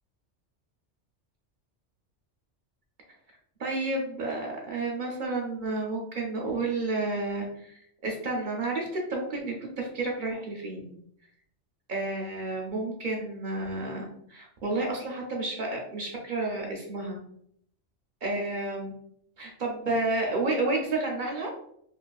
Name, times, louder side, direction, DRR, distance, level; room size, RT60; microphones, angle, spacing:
voice 1, 3.6-10.9 11.9-17.2 18.2-19.0 19.4-21.5, right 2 dB, 55° right, 0 dB, 0.6 m, -31 dB
2.9 x 2.4 x 2.2 m, 0.69 s
omnidirectional pair, 1.2 m